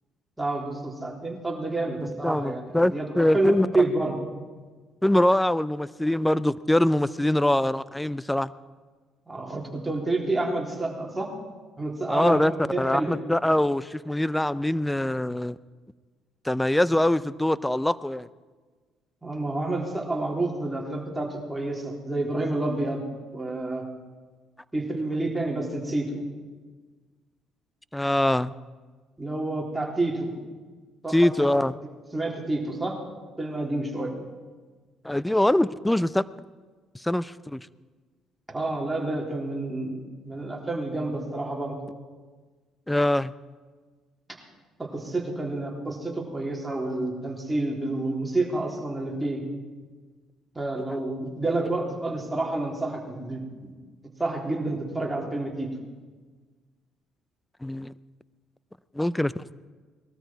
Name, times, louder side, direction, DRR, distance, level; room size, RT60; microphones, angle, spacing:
voice 1, 0.4-4.1 9.3-11.3 11.8-13.1 19.2-23.0 23.3-23.8 24.7-26.2 29.2-30.3 31.0-31.5 32.1-33.0 33.4-34.1 38.5-41.8 44.9-49.4 50.6-53.8 54.2-55.7, right 2 dB, 10° right, -1 dB, 3.7 m, -29 dB
voice 2, 2.0-3.7 5.0-8.5 12.1-12.5 12.8-15.6 16.4-18.3 27.9-28.5 31.1-31.8 35.0-36.2 36.9-37.7 42.9-43.3 50.9-51.0 57.6-57.9 58.9-59.3, left 1 dB, 10° left, 18 dB, 0.5 m, -23 dB
20.0 x 13.0 x 4.6 m, 1.4 s
supercardioid pair, 70°, 0 cm